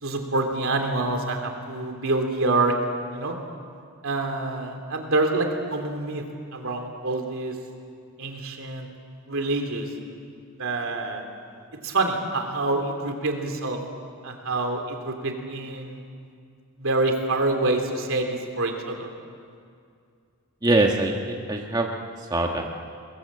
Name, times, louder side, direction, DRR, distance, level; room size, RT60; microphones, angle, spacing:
voice 1, 0.0-2.7 3.1-3.3 4.0-6.2 6.5-7.6 8.2-8.9 9.3-9.9 10.6-11.2 11.8-13.8 14.2-16.0 16.8-19.1, right 2 dB, 65° right, 3 dB, 3.2 m, -26 dB
voice 2, 20.6-21.9 22.3-22.7, right 2 dB, 20° right, 1 dB, 1.3 m, -23 dB
27.0 x 21.5 x 7.6 m, 2.3 s
head